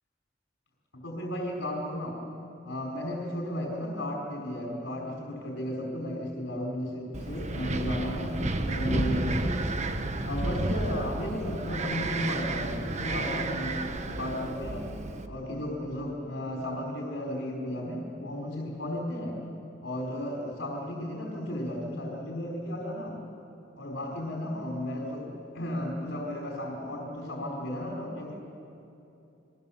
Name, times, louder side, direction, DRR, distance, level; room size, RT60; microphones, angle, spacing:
voice 1, 0.9-2.2 2.6-9.6 10.2-14.9 15.3-19.4 19.8-23.2 23.8-28.3, left 1 dB, 85° left, -2 dB, 4.3 m, -34 dB
Wind, 7.1-15.3, right 2 dB, 40° right, 1.3 m, -31 dB
29.5 x 22.5 x 7.2 m, 2.8 s
head